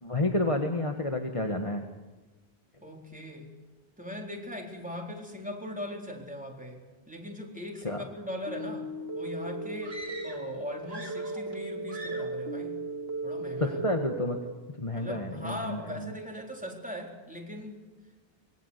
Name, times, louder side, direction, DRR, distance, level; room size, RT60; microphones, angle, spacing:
voice 1, 0.0-1.8 7.8-8.0 13.6-14.4 14.8-16.1, left 1 dB, 30° left, 4 dB, 1.7 m, -30 dB
voice 2, 2.8-3.5 4.0-12.8 13.2-13.8 14.9-17.8, left 1 dB, 5° right, 0 dB, 4.2 m, -40 dB
sound 1, 8.4-14.5, right 2 dB, 80° right, 2.7 m, -36 dB
sound 2, 9.8-10.6 10.8-11.6 11.9-12.4, right 1 dB, 35° right, 3.7 m, -44 dB
25.5 x 22.5 x 8.3 m, 1.2 s
omnidirectional pair, 1.0 m